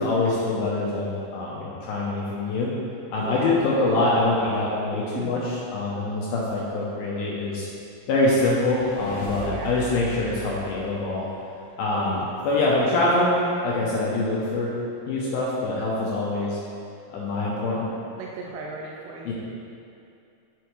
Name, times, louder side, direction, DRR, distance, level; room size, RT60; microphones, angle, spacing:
voice 1, 0.0-2.7 3.1-7.7 8.1-11.3 11.8-14.7 15.1-16.6 17.1-17.9 19.3-19.4, left 2 dB, 85° left, -5 dB, 2.1 m, -24 dB
voice 2, 3.2-3.5 4.9-5.4 9.4-9.8 12.0-12.3 18.2-19.3, right 4 dB, 85° right, -1 dB, 2.4 m, -37 dB
sound 1, 8.3-11.7, right 3 dB, 65° left, 1.8 m, -39 dB
7.8 x 6.9 x 3.2 m, 2.5 s
omnidirectional pair, 5.2 m